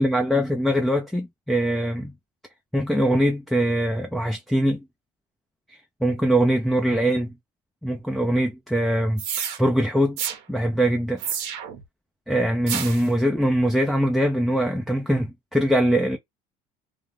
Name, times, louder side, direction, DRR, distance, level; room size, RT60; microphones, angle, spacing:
voice 1, 0.0-2.1 2.7-4.8 5.7-7.4 7.8-10.2 10.5-11.2 12.3-16.2, right 1 dB, ahead, 0.4 m, -22 dB
sound 1, 9.2-9.6 10.2-10.4 11.2-11.8 12.7-13.1, right 8 dB, 85° right, 0.9 m, -29 dB
2.4 x 2.1 x 3.2 m
cardioid pair, 110°, 14 cm